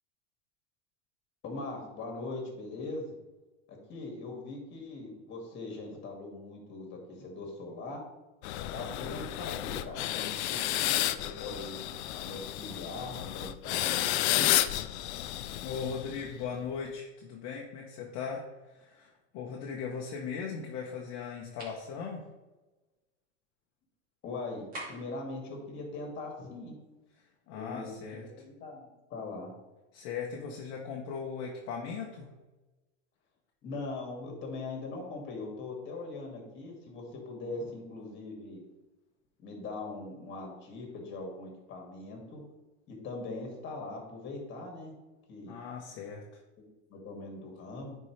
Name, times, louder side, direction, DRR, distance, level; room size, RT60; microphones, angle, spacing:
voice 1, 1.4-3.1 3.7-8.0 8.7-11.0 11.4-11.8 12.2-14.5 24.2-26.7 27.5-29.5 33.6-38.6 39.4-42.4 42.9-44.9 45.3-45.6 46.6-48.0, left 3 dB, 35° left, 1 dB, 2.3 m, -41 dB
sound 1, 8.4-16.4, left 14 dB, 75° left, 0.6 m, -32 dB
voice 2, 15.6-22.3 27.1-28.2 29.9-32.3 45.5-46.2, left 6 dB, 50° left, -1 dB, 1.1 m, -38 dB
sound 2, 21.6-21.8 24.7-25.2, right 1 dB, 25° right, 2.5 m, -42 dB
9.8 x 4.6 x 3.3 m, 1.1 s
supercardioid pair, 145°, 34 cm